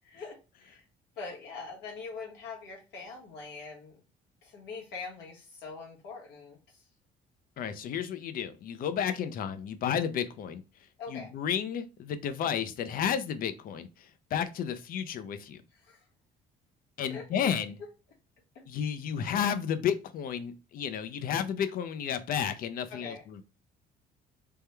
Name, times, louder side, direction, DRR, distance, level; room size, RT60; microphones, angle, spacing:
voice 1, 0.0-0.9 1.2-4.0 4.4-6.9 9.2-9.3 11.0-11.3 15.7-16.1 17.1-17.5 18.5-18.6 22.9-23.2, left 4 dB, 80° left, -2 dB, 1.4 m, -43 dB
voice 2, 7.6-10.6 11.1-15.6 17.0-17.8 18.7-23.4, left 8 dB, 60° left, 11 dB, 0.5 m, -32 dB
3.5 x 2.2 x 4.4 m, 0.32 s
cardioid pair, 110°, 17 cm